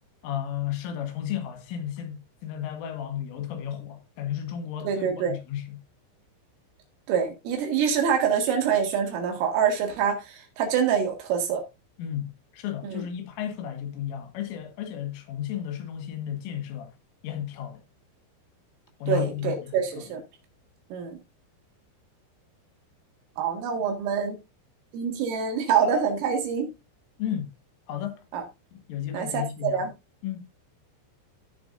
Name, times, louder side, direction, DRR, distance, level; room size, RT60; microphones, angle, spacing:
voice 1, 0.2-5.8 12.0-16.9 17.2-17.8 19.0-20.1 27.2-27.5 27.9-28.2 28.9-29.9 30.2-30.4, left 10 dB, 75° left, 4.0 m, -33 dB
voice 2, 4.8-5.3 7.1-11.6 12.8-13.0 19.1-20.2 20.9-21.2 23.4-24.4 24.9-26.7 28.3-28.4 29.1-29.9, right 7 dB, 75° right, 4.4 m, -25 dB
15.0 x 7.1 x 2.6 m
omnidirectional pair, 5.9 m